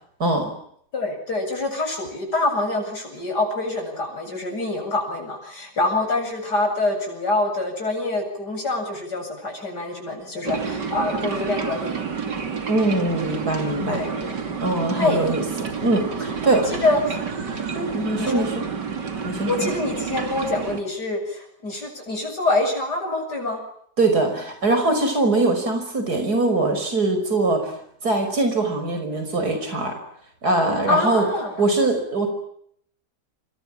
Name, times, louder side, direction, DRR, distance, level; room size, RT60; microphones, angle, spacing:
voice 1, 0.9-12.0 13.9-14.3 15.0-15.2 16.5-17.2 17.7-17.9 18.2-18.4 19.4-23.6 30.9-31.5, left 2 dB, 70° left, 3 dB, 8.7 m, -25 dB
sound 1, 10.4-20.8, right 6 dB, 90° right, 3.4 m, -29 dB
voice 2, 12.7-14.0 14.6-16.7 17.9-18.7 19.2-19.7 24.0-30.0 30.4-31.3 31.6-32.3, right 2 dB, 65° right, 6 dB, 6.0 m, -22 dB
29.0 x 26.5 x 7.5 m, 0.69 s
omnidirectional pair, 1.8 m